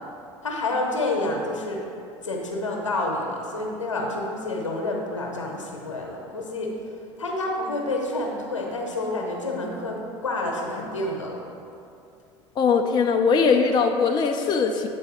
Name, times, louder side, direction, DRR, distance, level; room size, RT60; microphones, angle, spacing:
voice 1, 0.4-1.8 2.2-6.7 7.2-11.4, left 2 dB, 80° left, 0 dB, 0.9 m, -28 dB
voice 2, 12.6-14.9, left 5 dB, 30° left, 4 dB, 0.4 m, -20 dB
8.0 x 3.9 x 4.1 m, 2.5 s
figure-of-eight pair, 70°, 16 cm